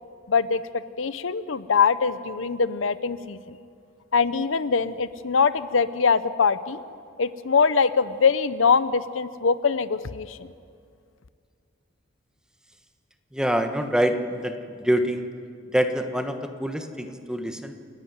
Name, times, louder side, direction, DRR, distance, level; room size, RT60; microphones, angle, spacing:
voice 1, 0.3-3.4 4.1-6.8 7.2-10.5, left 5 dB, 85° left, 15 dB, 0.7 m, -23 dB
voice 2, 13.3-15.2 15.7-17.9, equal, 5° right, 7 dB, 1.2 m, -26 dB
28.5 x 11.5 x 9.5 m, 2.3 s
head